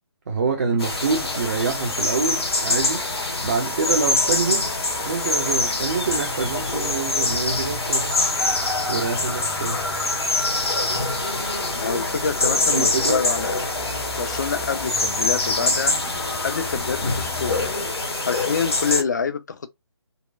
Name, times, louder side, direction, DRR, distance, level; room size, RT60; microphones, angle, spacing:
voice 1, 0.3-3.1 3.4-4.7 5.0-8.2 8.9-9.8 12.7-13.2, right 5 dB, 35° right, 0.5 m, -26 dB
sound 1, 0.8-19.0, left 2 dB, 65° left, 1.1 m, -24 dB
Traffic noise roadway noise, 1.1-17.7, left 1 dB, 5° left, 0.6 m, -41 dB
voice 2, 11.7-13.6 14.2-16.0 16.4-17.9 18.2-19.7, left 5 dB, 40° left, 0.5 m, -27 dB
4.0 x 2.1 x 2.4 m
figure-of-eight pair, 150°, 14 cm